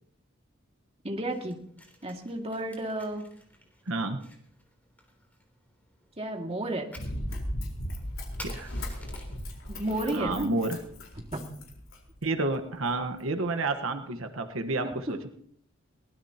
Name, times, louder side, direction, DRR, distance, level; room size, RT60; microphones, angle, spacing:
voice 1, 1.0-1.6 2.0-3.2 6.2-6.9 9.7-10.5 11.3-11.4 14.8-15.2, right 1 dB, 30° right, 1 dB, 2.2 m, -32 dB
Fire, 1.1-9.5, equal, 10° left, 3.3 m, -52 dB
voice 2, 3.9-4.2 8.4-8.7 10.1-10.8 12.2-15.3, right 2 dB, 80° right, 6 dB, 1.3 m, -30 dB
Run, 7.0-12.2 12.8-12.9, equal, 80° left, 4.2 m, -37 dB
22.0 x 19.0 x 2.9 m, 0.68 s
head